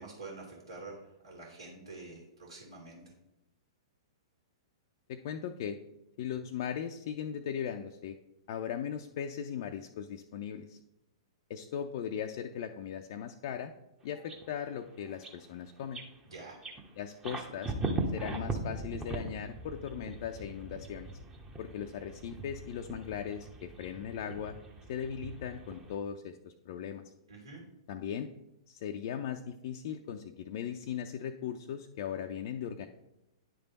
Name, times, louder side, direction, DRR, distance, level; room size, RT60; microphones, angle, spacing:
voice 1, 0.0-3.0 16.2-16.6 27.3-27.6, right 3 dB, 80° right, -3 dB, 2.1 m, -47 dB
voice 2, 5.1-5.8 6.2-8.2 8.5-10.8 11.5-13.7 14.0-16.0 17.0-17.7 18.1-21.1 21.6-24.5 24.9-27.0 27.9-28.3 28.7-32.9, left 8 dB, 50° left, 4 dB, 0.4 m, -38 dB
sound 1, 14.1-14.8 15.1-15.4 15.8-16.2 16.6-26.0, right 2 dB, 15° right, 0.9 m, -40 dB
10.0 x 3.4 x 4.0 m, 0.90 s
figure-of-eight pair, 110°, 3 cm